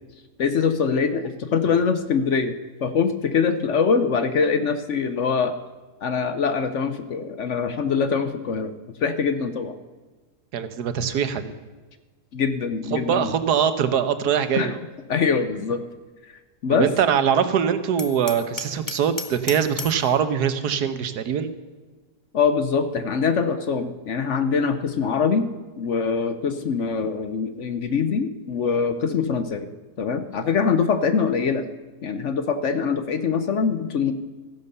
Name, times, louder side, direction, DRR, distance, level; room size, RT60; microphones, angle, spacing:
voice 1, 0.4-2.5 2.8-5.6 6.0-8.7 9.0-9.8 12.3-13.3 14.5-14.7 15.1-15.8 16.6-16.9 22.3-25.5 25.8-29.7 30.0-31.7 32.0-34.1, left 5 dB, 55° left, 10 dB, 1.0 m, -23 dB
voice 2, 10.5-11.5 12.9-14.8 16.8-21.5, right 8 dB, 80° right, 11 dB, 1.5 m, -22 dB
Hammer, 18.0-20.1, left 3 dB, 15° left, 0.7 m, -34 dB
14.0 x 11.0 x 6.8 m, 1.3 s
omnidirectional pair, 1.7 m